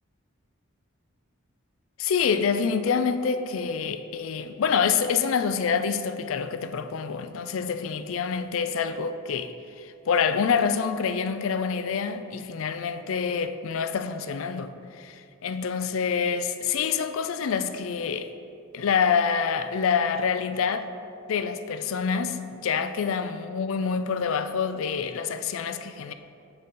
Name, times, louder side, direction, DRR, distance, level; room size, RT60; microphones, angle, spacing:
voice 1, 2.0-18.3 18.7-20.9 21.3-26.1, left 6 dB, 75° left, 0.4 m, -27 dB
11.0 x 4.0 x 3.8 m
head